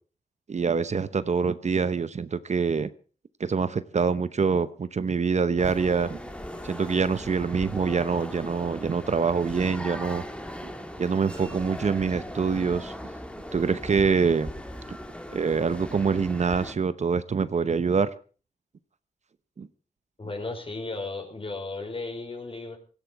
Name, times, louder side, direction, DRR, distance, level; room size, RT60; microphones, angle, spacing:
voice 1, 0.5-2.9 3.4-6.2 6.6-10.2 10.6-10.7 11.0-12.9 13.5-14.5 14.9-15.0 15.3-18.1 19.6-19.7, right 5 dB, 50° right, 14 dB, 0.9 m, -25 dB
sound 1, 5.6-16.7, equal, 5° left, 2.1 m, -39 dB
voice 2, 20.2-22.8, left 3 dB, 35° left, 4 dB, 5.3 m, -35 dB
17.5 x 15.5 x 4.7 m, 0.39 s
wide cardioid pair, 95°, 15 cm